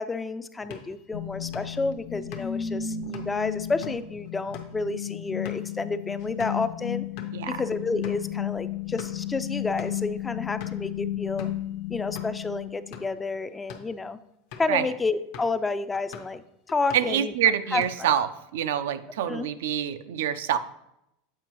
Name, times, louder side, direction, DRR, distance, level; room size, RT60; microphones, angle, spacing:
voice 1, 0.0-7.1 7.5-11.5 11.9-14.2 14.6-16.4 16.7-17.3 17.7-18.1 19.3-19.5, left 3 dB, 15° left, 12 dB, 0.3 m, -30 dB
sound 1, 0.6-6.7 7.0-7.3 7.7-7.8 8.0-8.2 8.7-9.3 9.8-10.1 10.6-10.9 11.4-11.6 12.1-12.3 12.8-13.2 13.6-13.9 14.5-14.8 15.3-15.6 15.9-16.4 16.7-17.2 17.6-18.2, left 6 dB, 65° left, 0.8 m, -45 dB
sound 2, 1.1-13.1, left 10 dB, 80° left, 0.5 m, -34 dB
voice 2, 16.9-18.3 18.5-20.6, right 10 dB, 80° right, 11 dB, 0.4 m, -26 dB
7.4 x 4.4 x 3.0 m, 0.83 s
supercardioid pair, 110°, 0 cm